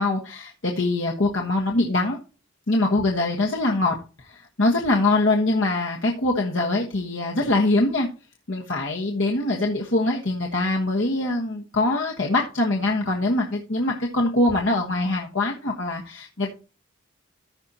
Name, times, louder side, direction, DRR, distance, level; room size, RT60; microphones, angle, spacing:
voice 1, 0.0-2.2 2.7-4.0 4.3-8.1 8.5-16.5, left 2 dB, 65° left, -1 dB, 1.4 m, -23 dB
15.0 x 5.4 x 2.9 m, 0.34 s
head